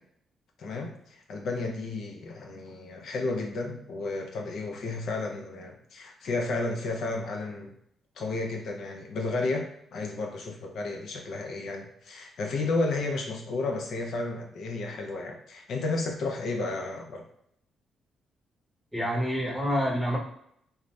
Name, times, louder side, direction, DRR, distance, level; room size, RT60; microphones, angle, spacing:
voice 1, 0.6-7.7 8.2-9.7 9.9-17.2, left 3 dB, 70° left, 2 dB, 0.5 m, -32 dB
voice 2, 18.9-20.2, equal, ahead, -3 dB, 0.8 m, -27 dB
2.6 x 2.1 x 3.1 m, 0.71 s
cardioid pair, 125°, 0 cm